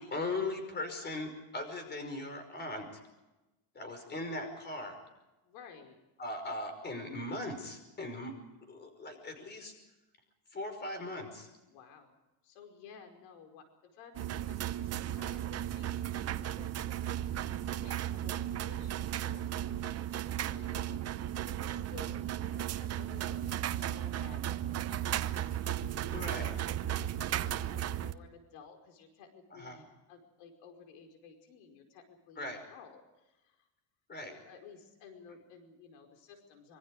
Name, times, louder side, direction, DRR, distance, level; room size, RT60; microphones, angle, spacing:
voice 1, 0.0-2.8 3.8-5.0 6.2-8.3 8.7-9.8 10.5-11.5 26.1-26.5 29.5-29.8 32.4-32.6 34.1-34.3, left 2 dB, 20° left, 7 dB, 5.4 m, -39 dB
voice 2, 5.4-6.0 11.7-12.2 12.4-13.7 13.9-16.7 17.0-17.1 17.5-24.8 25.1-33.7 34.3-36.8, left 6 dB, 85° left, 5 dB, 5.2 m, -55 dB
sound 1, 14.1-28.1, right 11 dB, 30° right, 0.8 m, -35 dB
26.0 x 24.0 x 4.9 m, 1.0 s
cardioid pair, 150°, 48 cm